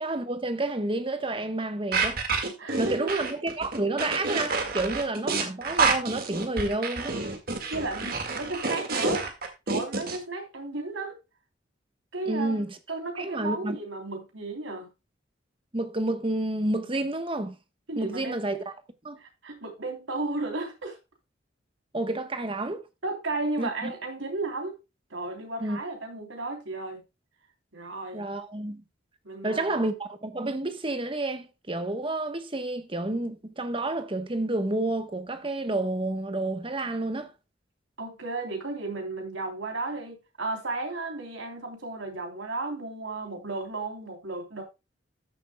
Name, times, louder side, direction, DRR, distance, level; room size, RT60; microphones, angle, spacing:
voice 1, 0.0-2.2 2.8-7.2 12.3-12.8 13.2-13.8 15.7-17.6 18.0-18.6 19.0-19.2 21.9-22.8 23.6-23.9 25.6-25.8 28.1-28.8 29.4-37.3, right 2 dB, 25° right, 1.1 m, -30 dB
sound 1, 1.9-10.2, right 4 dB, 50° right, 1.9 m, -28 dB
voice 2, 2.6-3.1 7.7-9.3 9.7-11.2 12.1-14.9 17.9-18.4 19.2-21.0 23.0-24.8 25.1-27.0 27.7-28.3 29.2-29.8 38.0-44.6, right 2 dB, 90° right, 3.4 m, -34 dB
14.0 x 7.3 x 2.3 m
head